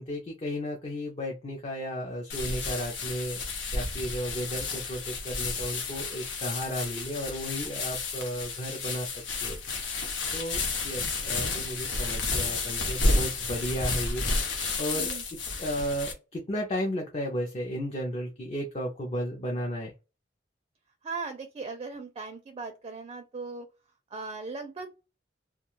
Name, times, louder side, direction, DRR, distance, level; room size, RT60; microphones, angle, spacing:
voice 1, 0.0-3.4 3.7-9.1 9.4-9.6 10.3-19.9, equal, 35° left, 0 dB, 0.5 m, -34 dB
sound 1, 2.3-16.1, left 3 dB, 80° left, 0.8 m, -31 dB
voice 2, 14.9-15.2 21.0-23.7 24.1-24.9, right 4 dB, 30° right, 6 dB, 0.4 m, -38 dB
2.4 x 2.3 x 3.0 m, 0.29 s
head